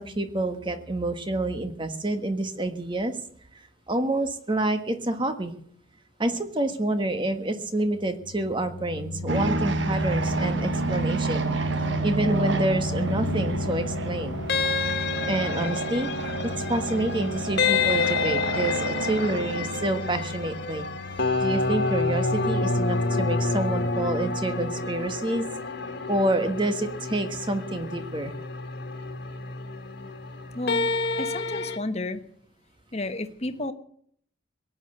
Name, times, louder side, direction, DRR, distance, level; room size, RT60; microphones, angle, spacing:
voice 1, 0.0-3.2 3.9-5.5 6.2-11.5 12.0-14.4 15.3-16.1 16.4-20.9 21.4-25.5 26.1-28.3, right 1 dB, 25° right, 8 dB, 1.5 m, -28 dB
sound 1, 7.8-24.5, left 2 dB, 80° left, 0.9 m, -36 dB
sound 2, 9.3-21.4, right 3 dB, 60° right, 1.4 m, -30 dB
sound 3, 14.5-31.8, left 4 dB, 55° left, 1.7 m, -29 dB
voice 2, 30.5-30.9 31.2-32.2 32.9-33.7, left 2 dB, 30° left, 9 dB, 1.2 m, -31 dB
17.5 x 10.0 x 8.0 m, 0.62 s
head